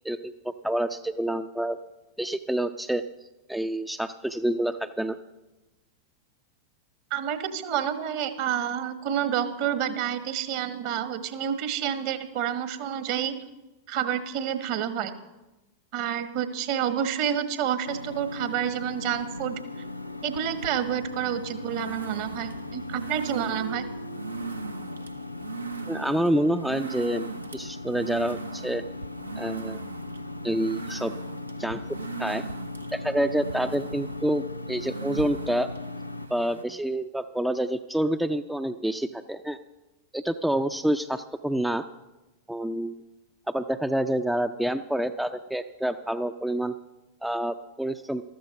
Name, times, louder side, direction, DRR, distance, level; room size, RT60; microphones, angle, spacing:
voice 1, 0.0-1.8 2.2-3.0 3.5-5.2 25.9-28.8 29.4-29.8 30.4-31.1 31.6-31.8 32.2-32.4 32.9-35.7 36.3-39.6 40.1-41.9 42.5-42.9 43.5-46.7 47.2-48.2, right 1 dB, 5° right, 9 dB, 0.4 m, -28 dB
voice 2, 7.1-13.4 13.9-15.1 15.9-19.6 20.2-23.8, right 9 dB, 45° right, 11 dB, 1.3 m, -29 dB
sound 1, 17.8-36.3, left 2 dB, 85° left, 0.5 m, -38 dB
sound 2, 19.7-36.6, right 5 dB, 80° right, 0.8 m, -40 dB
14.0 x 13.0 x 5.3 m, 1.0 s
figure-of-eight pair, 90°, 0 cm